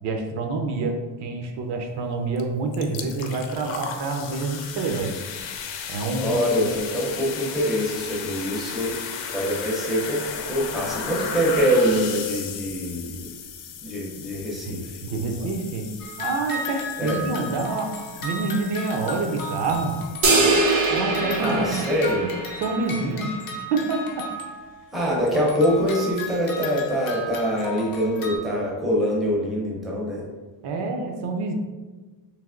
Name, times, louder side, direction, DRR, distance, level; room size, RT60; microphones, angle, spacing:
voice 1, 0.0-5.2 5.9-6.4 14.7-15.9 16.2-19.9 20.9-21.8 22.6-23.4 23.7-24.3 30.6-31.5, right 3 dB, 65° right, 4 dB, 0.6 m, -27 dB
sound 1, 2.4-2.5 2.7-20.5, left 7 dB, 85° left, 0.6 m, -36 dB
voice 2, 6.2-8.9 9.3-13.2 13.8-15.0 17.0-17.2 21.4-22.2 24.9-30.2, equal, ahead, -4 dB, 0.6 m, -24 dB
sound 2, 16.0-24.9 25.3-28.4, left 2 dB, 50° left, 0.7 m, -35 dB
sound 3, 20.2-22.8, right 3 dB, 85° right, 1.1 m, -22 dB
3.3 x 2.9 x 3.6 m, 1.3 s
cardioid pair, 170°, 44 cm